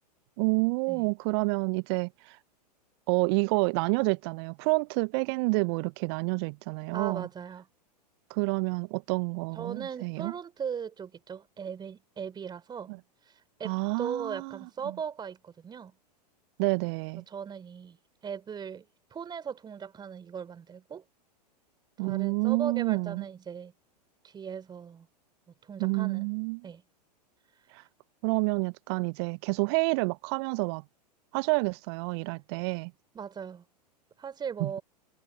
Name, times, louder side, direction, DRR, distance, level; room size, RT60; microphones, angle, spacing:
voice 1, 0.4-2.1 3.1-7.3 8.3-10.3 13.6-14.6 16.6-17.2 22.0-23.2 25.8-26.6 28.2-30.8 31.3-32.9 34.6-34.8, right 32 dB, 40° right, 0.4 m, -28 dB
voice 2, 6.9-7.7 9.5-12.9 13.6-15.9 17.3-18.0 18.2-21.0 22.0-23.7 24.2-25.1 25.6-26.3 26.6-26.8 33.1-33.6 34.2-34.8, right 7 dB, 20° right, 4.3 m, -38 dB
figure-of-eight pair, 100°, 21 cm